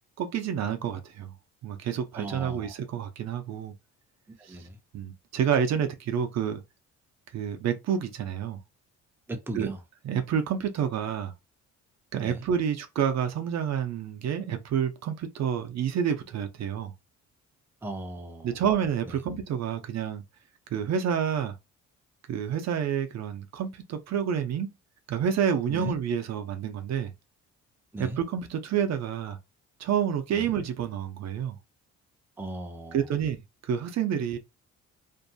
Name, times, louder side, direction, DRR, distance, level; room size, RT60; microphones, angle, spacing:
voice 1, 0.2-1.3 1.6-3.7 4.4-4.6 4.9-6.6 7.3-8.6 9.5-9.7 10.0-11.3 12.1-16.9 18.4-20.2 20.7-21.5 22.3-24.7 25.1-27.1 28.0-29.4 29.8-31.6 32.9-34.4, right 8 dB, 60° right, 0.6 m, -29 dB
voice 2, 2.1-2.7 4.4-4.8 9.3-9.8 12.2-12.4 17.8-18.6 19.1-19.2 25.7-25.9 27.9-28.2 30.3-30.5 32.4-33.0, right 1 dB, 5° right, 0.6 m, -37 dB
2.6 x 2.5 x 2.2 m
cardioid pair, 90°, 30 cm